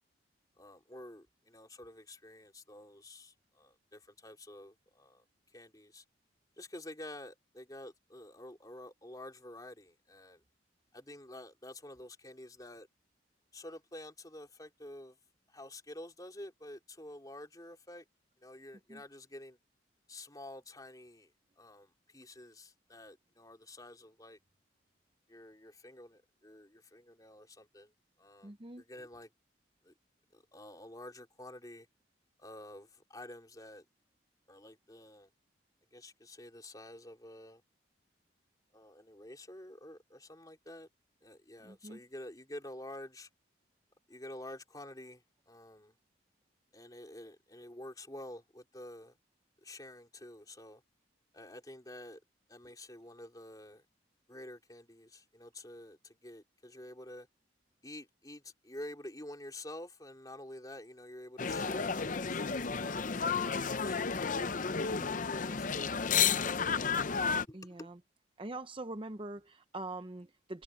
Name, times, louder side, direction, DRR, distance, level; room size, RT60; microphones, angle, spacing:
voice 1, 0.6-5.2 5.5-6.0 6.6-10.4 10.9-12.9 13.5-15.2 15.5-18.0 18.4-19.6 20.1-21.3 21.6-24.4 25.3-27.9 28.2-29.3 29.8-29.9 30.3-31.9 32.4-33.8 34.5-35.3 35.9-37.6 38.7-40.9 41.2-43.3 44.1-45.9 46.7-49.2 49.6-50.8 51.3-52.2 52.5-53.8 54.3-57.3 57.8-64.2 64.8-65.0 65.3-66.8 67.5-67.9, left 1 dB, 20° left, 3.8 m, -49 dB
voice 2, 28.4-28.8 41.6-42.0 64.7-65.1 67.5-68.0 68.4-70.6, right 2 dB, 25° right, 0.8 m, -44 dB
sound 1, 61.4-67.5, left 6 dB, 45° left, 0.6 m, -32 dB
head